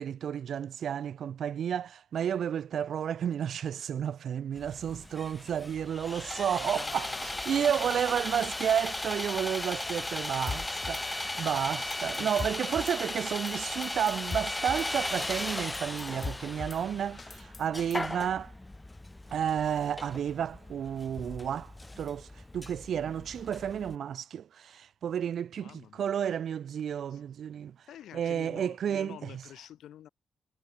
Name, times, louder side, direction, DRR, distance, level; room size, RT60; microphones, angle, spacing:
voice 1, 0.0-18.5 19.3-27.7 28.1-29.4, right 9 dB, 70° right, 1.1 m, -32 dB
Sawing, 4.6-23.9, left 2 dB, 20° left, 0.8 m, -37 dB
voice 2, 6.6-8.2 8.4-8.6 12.0-12.5 25.5-26.1 27.1-27.2 27.9-30.1, left 11 dB, 80° left, 3.4 m, -48 dB
Drum kit / Snare drum, 10.5-11.0 11.4-11.5 11.8-13.0 13.3-13.6 13.8-14.9 15.3-15.4 15.6-16.8 17.2-18.1, left 4 dB, 45° left, 1.2 m, -40 dB
supercardioid pair, 45°, 0 cm